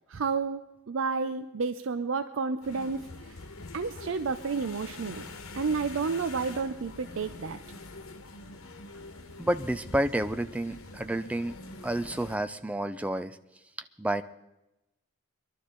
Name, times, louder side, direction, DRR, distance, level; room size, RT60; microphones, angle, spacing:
voice 1, 0.1-3.4 3.7-5.3 5.5-7.6, right 4 dB, 70° right, 10 dB, 0.5 m, -31 dB
sound 1, 2.6-12.4, left 3 dB, 90° left, 1.2 m, -45 dB
voice 2, 9.4-11.6 11.8-13.4 14.0-14.2, right 1 dB, 5° right, 10 dB, 0.4 m, -30 dB
22.0 x 12.0 x 3.9 m, 0.95 s
head